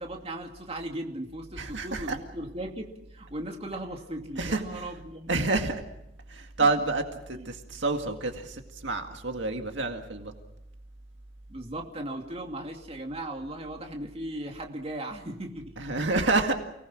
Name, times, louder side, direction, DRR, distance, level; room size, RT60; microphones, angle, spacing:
voice 1, 0.0-5.3 6.6-6.7 7.3-7.5 11.5-15.8, right 1 dB, 30° right, 2 dB, 2.6 m, -37 dB
voice 2, 1.6-2.2 4.4-4.9 5.3-5.8 6.3-10.3 15.8-16.5, right 3 dB, 70° right, 4 dB, 2.1 m, -28 dB
30.0 x 19.5 x 6.1 m, 0.87 s
head